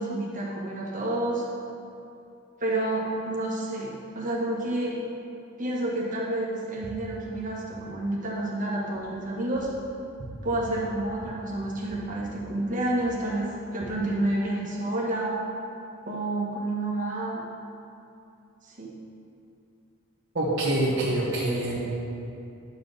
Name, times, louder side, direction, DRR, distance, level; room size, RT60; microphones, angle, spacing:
voice 1, 0.0-1.5 2.6-5.0 5.6-9.7 10.4-15.4 16.1-17.4 18.6-18.9, right 1 dB, 40° right, -4 dB, 1.8 m, -29 dB
voice 2, 20.3-21.8, right 1 dB, 60° right, -9 dB, 1.7 m, -25 dB
11.0 x 7.3 x 4.2 m, 2.7 s
head